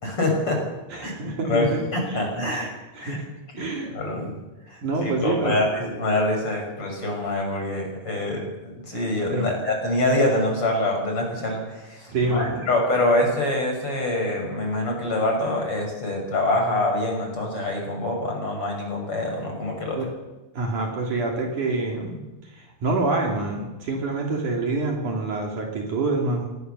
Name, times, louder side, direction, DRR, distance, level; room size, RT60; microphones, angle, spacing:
voice 1, 0.0-0.6 1.0-1.1 1.5-2.7 3.0-3.2 3.5-4.3 4.7-20.0, left 1 dB, 35° left, 1 dB, 6.7 m, -25 dB
voice 2, 0.9-1.8 2.1-2.2 2.9-3.3 3.6-4.1 4.8-5.7 9.3-9.5 12.1-12.7 20.0-20.1 20.5-26.5, right 3 dB, 55° right, 0 dB, 4.3 m, -26 dB
25.0 x 18.0 x 6.9 m, 1.1 s
omnidirectional pair, 4.3 m